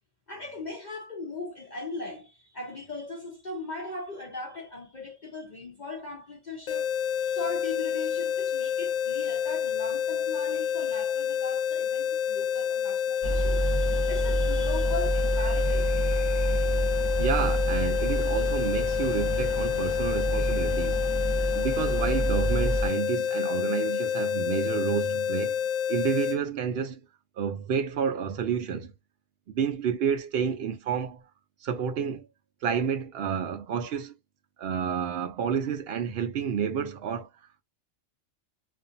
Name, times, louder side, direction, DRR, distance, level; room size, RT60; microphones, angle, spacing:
voice 1, 0.3-16.0, left 3 dB, 50° left, 0.5 m, -39 dB
sound 1, 6.7-26.4, left 8 dB, 90° left, 1.1 m, -28 dB
sound 2, 13.2-22.9, right 1 dB, 35° left, 1.0 m, -28 dB
voice 2, 17.2-21.0 21.5-25.6 25.9-27.0 27.4-28.9 29.5-31.2 31.6-32.3 32.6-34.1 34.6-37.3, right 7 dB, 65° right, 0.6 m, -30 dB
2.5 x 2.5 x 2.4 m
omnidirectional pair, 1.4 m